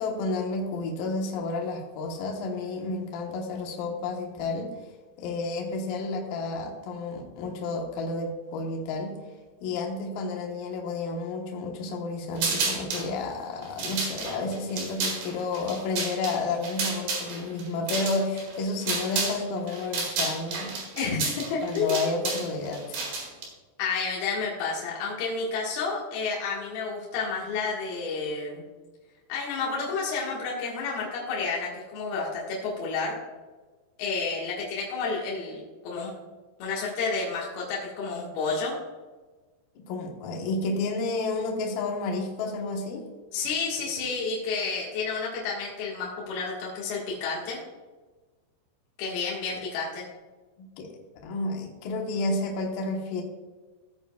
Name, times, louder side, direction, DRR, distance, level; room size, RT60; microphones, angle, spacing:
voice 1, 0.0-4.8 5.2-9.2 9.6-20.8 21.6-23.2 39.8-43.1 50.6-50.9 51.2-53.2, left 3 dB, 75° left, 1 dB, 2.1 m, -31 dB
sound 1, 12.4-13.1 13.6-19.4 19.7-23.4, right 4 dB, 55° right, 3.4 m, -31 dB
voice 2, 21.0-22.0 23.8-28.6 29.3-33.2 34.0-36.1 36.6-38.7 43.3-47.6 49.0-50.1, left 4 dB, 60° left, -5 dB, 2.9 m, -30 dB
16.0 x 9.1 x 2.3 m, 1.3 s
omnidirectional pair, 6.0 m